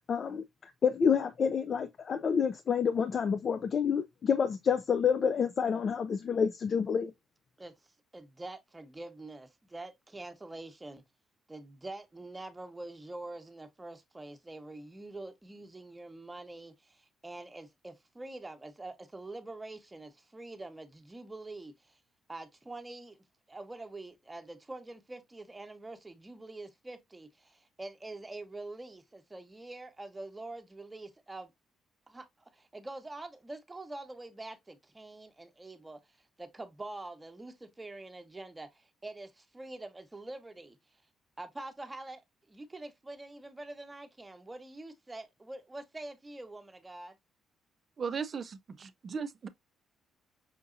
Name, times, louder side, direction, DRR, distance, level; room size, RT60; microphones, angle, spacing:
voice 1, 0.1-7.1, left 6 dB, 50° left, 0.4 m, -28 dB
voice 2, 8.1-11.0 11.5-22.0 22.3-23.2 23.5-31.5 32.1-32.3 32.5-36.0 36.4-40.8 41.4-42.2 42.5-47.2, right 2 dB, 15° right, 0.9 m, -45 dB
voice 3, 48.0-49.5, right 5 dB, 45° right, 0.4 m, -37 dB
5.7 x 2.6 x 2.5 m
cardioid pair, 90°, 0 cm